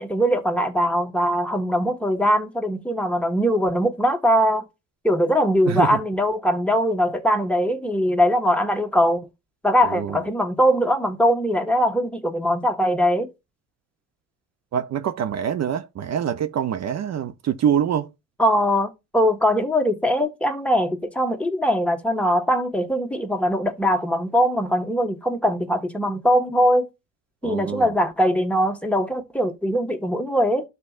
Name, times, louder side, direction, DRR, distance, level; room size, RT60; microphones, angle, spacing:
voice 1, 0.0-4.6 5.0-9.2 9.6-13.3 18.4-26.9 27.4-30.6, equal, 5° left, 1.4 m, -21 dB
voice 2, 5.7-6.0 9.8-10.2 14.7-18.1 27.4-27.9, right 9 dB, 60° right, 0.7 m, -25 dB
12.0 x 4.1 x 2.4 m
cardioid pair, 90°, 30 cm